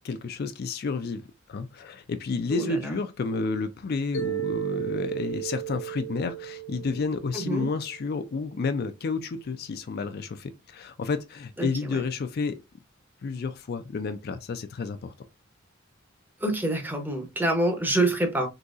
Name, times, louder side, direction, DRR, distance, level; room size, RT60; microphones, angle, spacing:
voice 1, 0.0-1.2 1.5-12.6 13.2-15.1, left 4 dB, 50° left, 0.4 m, -30 dB
voice 2, 2.5-2.9 7.3-7.7 11.6-11.7 11.9-12.0 16.4-18.5, right 1 dB, 10° right, 0.7 m, -26 dB
Mallet percussion, 4.1-8.3, right 13 dB, 70° left, 0.8 m, -35 dB
3.9 x 2.8 x 2.4 m
head